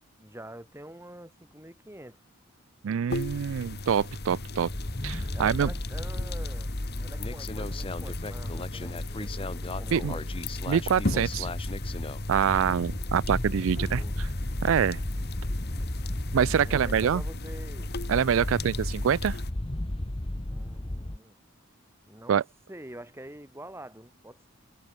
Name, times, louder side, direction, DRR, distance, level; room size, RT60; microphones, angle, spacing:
voice 1, 0.2-2.2 5.3-6.7 7.0-10.3 12.5-12.9 13.5-14.3 16.7-17.9 20.5-21.4 22.1-22.4 22.7-24.5, right 1 dB, 10° right, 5.2 m, -46 dB
voice 2, 2.8-4.7 5.0-5.7 9.9-10.1 10.7-11.5 12.3-14.3 14.6-15.0 16.3-17.2 18.1-19.4 22.3-22.4, right 8 dB, 65° right, 0.3 m, -25 dB
sound 1, 3.1-19.5, left 2 dB, 50° left, 1.5 m, -38 dB
sound 2, 4.7-21.2, left 1 dB, 25° left, 1.1 m, -34 dB
head